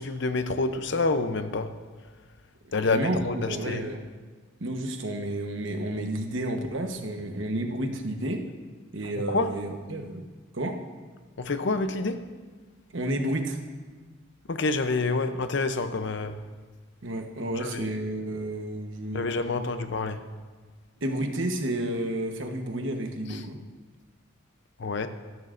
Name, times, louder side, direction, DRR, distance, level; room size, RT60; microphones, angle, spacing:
voice 1, 0.0-1.7 2.7-3.4 3.7-3.8 9.3-9.5 11.4-12.2 14.5-16.4 17.6-17.8 19.1-20.2 24.8-25.1, left 3 dB, 55° left, 10 dB, 0.6 m, -27 dB
voice 2, 2.7-4.0 4.6-8.4 8.9-10.3 10.5-10.8 12.9-13.6 17.0-19.3 21.0-23.6, right 1 dB, 65° right, 4 dB, 1.1 m, -31 dB
18.0 x 12.5 x 2.6 m, 1.4 s
head